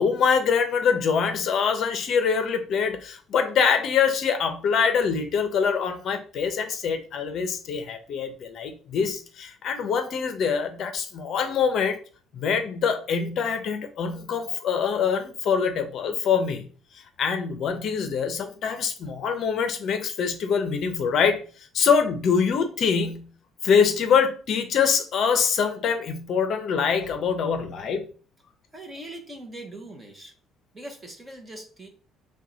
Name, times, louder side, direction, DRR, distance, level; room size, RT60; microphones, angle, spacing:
voice 1, 0.0-12.0 12.3-16.6 17.2-21.4 21.7-23.3 23.6-28.1, left 6 dB, 40° left, 0.7 m, -24 dB
voice 2, 28.7-30.3 30.7-31.9, right 1 dB, 10° right, 0.9 m, -41 dB
5.9 x 2.3 x 3.9 m
cardioid pair, 175°, 0 cm